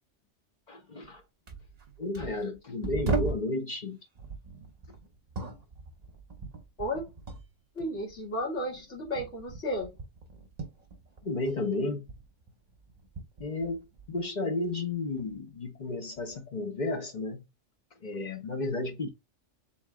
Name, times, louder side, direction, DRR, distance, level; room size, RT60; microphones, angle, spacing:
voice 1, 0.7-1.2 2.0-4.0 11.2-12.1 13.4-13.8 14.1-17.4 18.0-19.1, left 2 dB, 40° left, 0.9 m, -32 dB
sound 1, 1.0-1.2 1.5-3.5 4.2-7.5 7.8-11.6 11.9-14.2 14.7-15.4 16.2-16.3, right 4 dB, 40° right, 0.8 m, -38 dB
voice 2, 7.8-9.9, equal, 75° left, 2.3 m, -33 dB
3.9 x 2.9 x 3.6 m
omnidirectional pair, 1.3 m